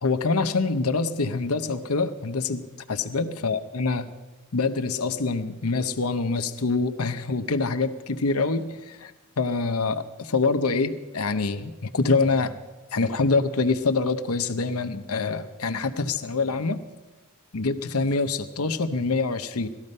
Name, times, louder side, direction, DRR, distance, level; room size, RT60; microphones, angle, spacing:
voice 1, 0.0-2.6 2.9-4.1 4.5-9.1 9.4-12.6 12.9-16.8 17.5-19.7, left 4 dB, 80° left, 10 dB, 0.9 m, -25 dB
18.5 x 13.5 x 5.4 m, 1.1 s
head